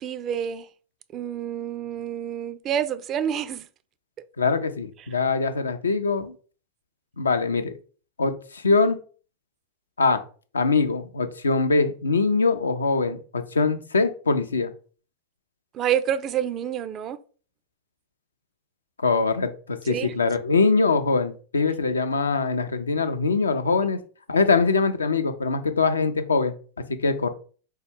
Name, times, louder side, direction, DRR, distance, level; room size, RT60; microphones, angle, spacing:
voice 1, 0.0-0.7 1.1-3.7 15.7-17.2 19.9-20.1, right 9 dB, 30° right, 0.3 m, -28 dB
voice 2, 4.4-6.3 7.2-7.7 8.2-9.0 10.0-10.2 10.5-14.7 19.0-24.0 24.3-26.5 26.9-27.3, left 4 dB, 75° left, 0.4 m, -23 dB
4.4 x 2.1 x 3.5 m
figure-of-eight pair, 90°, 0 cm